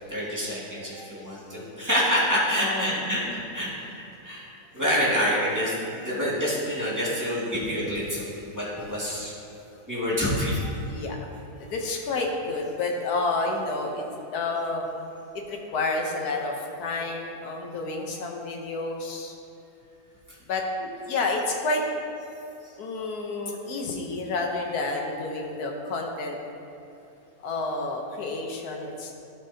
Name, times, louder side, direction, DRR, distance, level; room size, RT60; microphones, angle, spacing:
voice 1, 0.1-4.4 4.7-8.3 8.5-9.3 9.9-10.7, equal, 10° right, -9 dB, 2.0 m, -27 dB
voice 2, 2.6-3.1 8.3-8.7 10.9-11.2 11.6-14.0 14.3-14.9 15.5-19.3 20.5-20.6 21.1-21.8 22.8-26.4 27.4-29.1, left 3 dB, 80° left, 1 dB, 1.4 m, -30 dB
14.5 x 5.6 x 2.8 m, 2.7 s
omnidirectional pair, 1.6 m